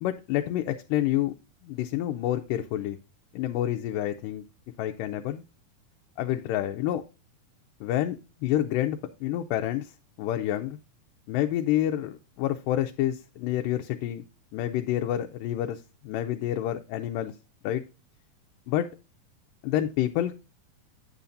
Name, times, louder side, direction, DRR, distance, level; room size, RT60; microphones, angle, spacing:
voice 1, 0.0-1.3 1.6-3.0 3.3-4.4 4.8-5.4 6.2-7.0 7.8-8.2 8.4-9.9 10.2-10.8 11.3-14.2 14.5-17.3 17.6-17.8 18.7-18.9 19.6-20.4, left 12 dB, 85° left, 2.2 m, -28 dB
9.0 x 7.0 x 2.5 m
omnidirectional pair, 3.8 m